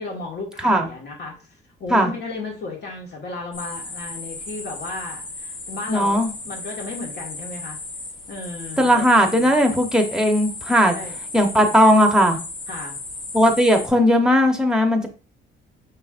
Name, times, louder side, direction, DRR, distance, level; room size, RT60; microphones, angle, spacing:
voice 1, 0.0-1.4 1.8-6.2 6.4-7.8 8.3-8.9 10.9-11.2 12.7-13.0, left 3 dB, 55° left, 0 dB, 1.8 m, -34 dB
sound 1, 3.5-13.9, left 3 dB, 75° left, 1.5 m, -35 dB
voice 2, 5.9-6.3 8.8-11.0 11.3-12.4 13.3-15.1, equal, 5° right, 4 dB, 0.9 m, -17 dB
5.7 x 3.1 x 2.5 m, 0.34 s
cardioid pair, 90°, 20 cm